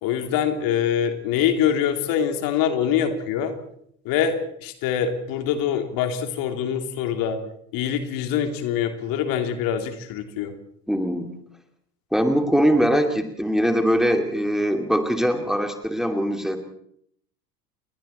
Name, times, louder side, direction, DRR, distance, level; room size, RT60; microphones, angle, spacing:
voice 1, 0.0-3.6 4.0-7.4 7.7-10.5, left 8 dB, 45° left, 6 dB, 2.9 m, -24 dB
voice 2, 10.9-11.3 12.1-16.6, equal, ahead, 5 dB, 2.6 m, -22 dB
29.5 x 23.0 x 4.3 m, 0.69 s
figure-of-eight pair, 75°, 47 cm